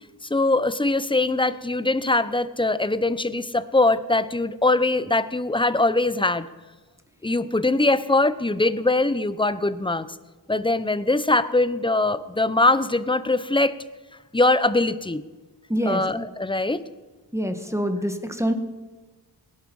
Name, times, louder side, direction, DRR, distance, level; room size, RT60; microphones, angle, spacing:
voice 1, 0.2-6.5 7.2-10.1 10.5-13.8 14.3-15.2 15.8-16.8, left 2 dB, 10° left, 14 dB, 0.9 m, -22 dB
voice 2, 15.7-16.0 17.3-18.5, equal, 5° right, 7 dB, 1.8 m, -25 dB
18.0 x 12.0 x 5.5 m, 1.3 s
cardioid pair, 45°, 42 cm